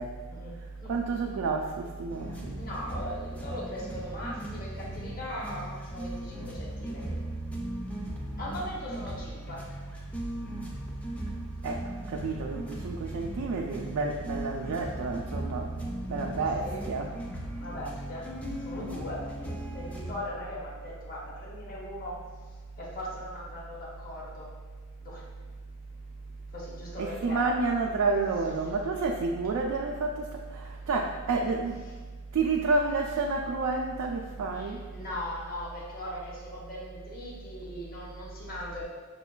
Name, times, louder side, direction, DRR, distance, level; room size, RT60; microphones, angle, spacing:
voice 1, 0.6-2.7 11.6-15.8 16.1-17.1 27.0-31.9 32.3-34.8, right 3 dB, 90° right, 0 dB, 0.3 m, -30 dB
sound 1, 2.1-20.2, right 1 dB, 5° left, 0.3 m, -38 dB
voice 2, 2.5-7.2 8.4-9.7 16.3-16.8 17.6-18.3 18.6-22.2 22.8-24.5 25.0-25.2 26.5-27.6 34.5-38.8, left 1 dB, 45° left, -6 dB, 0.8 m, -39 dB
5.7 x 2.2 x 2.3 m, 1.5 s
head